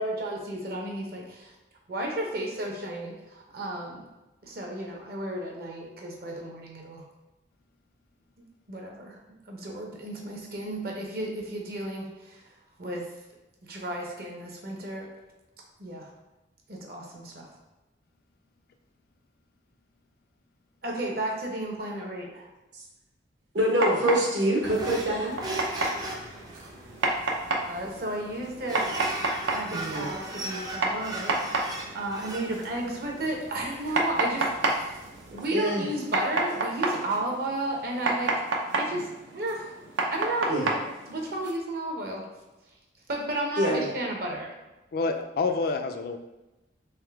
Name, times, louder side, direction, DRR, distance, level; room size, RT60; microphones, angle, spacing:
voice 1, 0.0-1.5 1.9-4.0 4.4-7.0 8.7-9.2 9.5-12.4 12.8-13.1 13.6-15.1 15.8-16.1 16.7-17.5 20.8-22.5 27.7-28.9 29.5-31.6 31.9-35.0 35.3-38.4 38.7-39.8 40.1-40.8 41.1-42.2 43.1-44.5, right 1 dB, 55° right, 0 dB, 0.7 m, -33 dB
voice 2, 23.5-25.4 29.7-30.1 35.5-35.8 40.5-40.7 43.6-43.8, right 1 dB, 70° right, -2 dB, 1.1 m, -25 dB
sound 1, 23.6-41.5, right 2 dB, 90° right, 0.6 m, -31 dB
sound 2, 24.6-35.5, right 1 dB, 20° right, 0.5 m, -38 dB
voice 3, 44.9-46.2, left 3 dB, 50° left, 7 dB, 0.3 m, -28 dB
3.6 x 3.2 x 3.4 m, 1.0 s
head